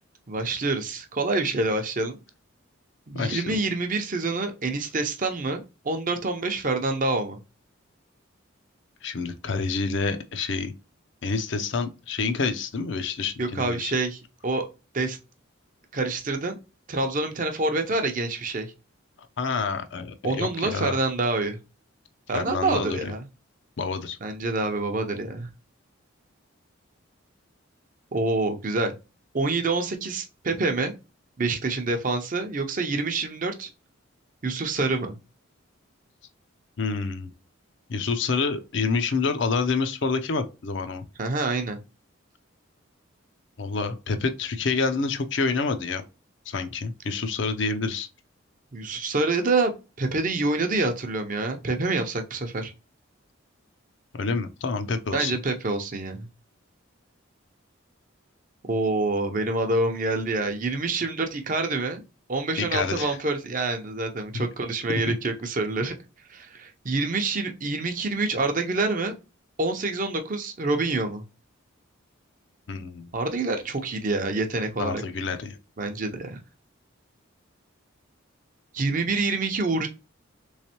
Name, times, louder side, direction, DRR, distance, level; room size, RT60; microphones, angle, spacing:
voice 1, 0.3-2.2 3.1-7.4 13.4-14.7 14.9-15.2 15.9-16.6 16.9-18.7 20.2-21.6 22.3-23.3 24.2-25.5 28.1-28.9 29.3-30.9 31.4-33.7 34.4-35.1 41.2-41.8 48.7-49.7 50.0-52.7 55.1-56.3 58.6-62.0 62.3-65.9 66.3-69.1 69.6-71.2 73.1-75.0 75.8-76.4 78.7-79.9, right 3 dB, 40° right, 0.6 m, -27 dB
voice 2, 3.1-3.6 9.0-10.7 11.2-13.9 19.4-21.0 22.3-23.1 23.8-24.2 36.8-37.3 37.9-41.0 43.6-46.0 46.5-48.1 54.2-55.4 62.6-63.2 64.3-64.5 65.1-65.2 72.7-73.1 74.8-75.6, left 4 dB, 60° left, 0.5 m, -28 dB
3.5 x 3.2 x 2.8 m
head